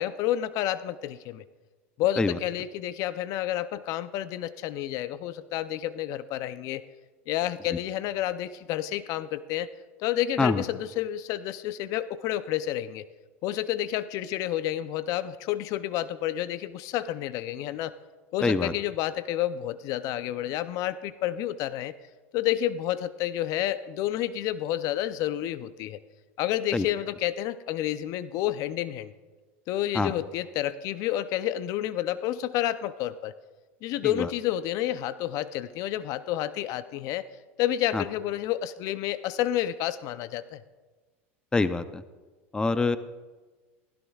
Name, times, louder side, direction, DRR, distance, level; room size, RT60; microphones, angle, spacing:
voice 1, 0.0-1.4 2.0-6.8 7.3-9.7 10.0-13.1 13.4-17.9 18.3-21.9 22.3-26.0 26.4-29.1 29.7-33.3 33.8-37.2 37.6-40.6, left 12 dB, 55° left, 14 dB, 0.5 m, -30 dB
voice 2, 18.4-18.7 26.7-26.9 29.9-30.1 34.2-34.3 37.9-38.0 41.5-42.0 42.5-43.0, left 3 dB, 10° left, 13 dB, 0.5 m, -24 dB
16.0 x 15.0 x 2.4 m, 1.3 s
supercardioid pair, 105°, 7 cm